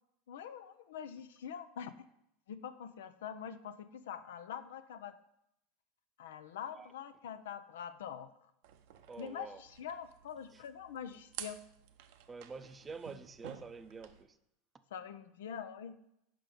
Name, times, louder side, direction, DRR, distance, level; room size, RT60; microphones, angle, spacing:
voice 1, 0.3-1.9 2.5-5.1 6.2-8.3 9.2-11.6 14.9-15.9, left 8 dB, 80° left, 12 dB, 0.4 m, -44 dB
sound 1, 8.6-14.2, right 10 dB, 70° right, 0.6 m, -52 dB
voice 2, 9.1-9.6 10.5-10.6 12.3-14.4, right 4 dB, 20° right, 11 dB, 0.5 m, -47 dB
5.9 x 4.9 x 4.9 m, 0.80 s
hypercardioid pair, 90°, 0 cm